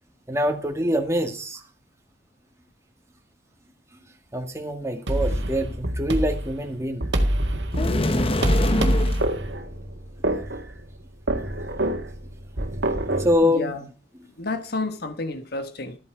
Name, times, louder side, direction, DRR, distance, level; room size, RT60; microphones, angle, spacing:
voice 1, 0.3-1.6 4.3-7.1 13.2-13.8 14.2-14.3, equal, 15° right, 1.9 m, -25 dB
sound 1, 5.1-13.3, right 1 dB, 75° right, 1.9 m, -26 dB
sound 2, 7.7-9.3, left 1 dB, 35° left, 1.0 m, -24 dB
voice 2, 13.4-13.8 14.4-16.0, left 3 dB, 60° left, 1.3 m, -30 dB
13.5 x 8.8 x 4.6 m
head